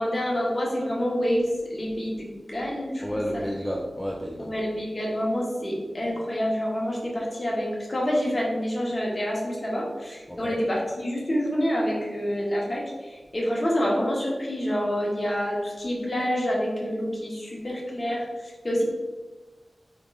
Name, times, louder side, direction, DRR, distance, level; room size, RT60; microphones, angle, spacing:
voice 1, 0.0-3.0 3.3-3.4 4.4-18.8, equal, 30° left, -4 dB, 1.3 m, -27 dB
voice 2, 3.0-4.5 10.3-10.6, equal, 5° left, -3 dB, 0.5 m, -31 dB
3.5 x 3.2 x 4.8 m, 1.3 s
wide cardioid pair, 105°, 0 cm